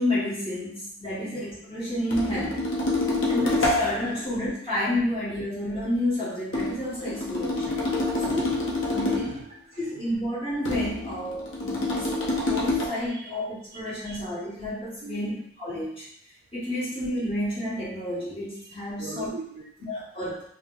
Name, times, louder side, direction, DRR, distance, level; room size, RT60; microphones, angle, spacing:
voice 1, 0.0-2.6 3.3-7.8 8.2-8.5 8.9-9.2 9.8-12.1 12.5-16.1 16.5-19.3 19.9-20.4, left 1 dB, 25° left, -10 dB, 1.3 m, -30 dB
sound 1, 2.1-4.1 6.5-9.4 10.6-12.9, left 2 dB, 60° left, 0.6 m, -27 dB
voice 2, 7.6-9.5 9.7-10.2 13.1-13.3 13.7-13.8 14.0-14.2 15.0-15.4 16.8-16.9 18.7-19.9, right 3 dB, 50° right, 3 dB, 0.4 m, -43 dB
2.5 x 2.0 x 3.8 m, 0.67 s
head